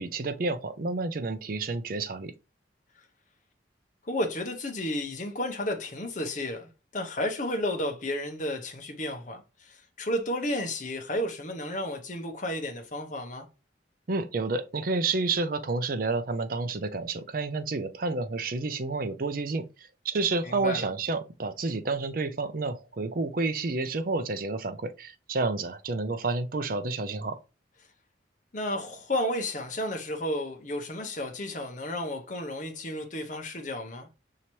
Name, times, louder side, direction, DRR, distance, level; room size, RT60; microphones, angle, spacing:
voice 1, 0.0-2.3 14.1-19.6 20.0-27.4, right 3 dB, 50° right, 0.5 m, -30 dB
voice 2, 4.1-13.5 20.4-20.9 28.5-34.1, left 1 dB, 40° left, 0.9 m, -32 dB
5.5 x 2.8 x 3.1 m
head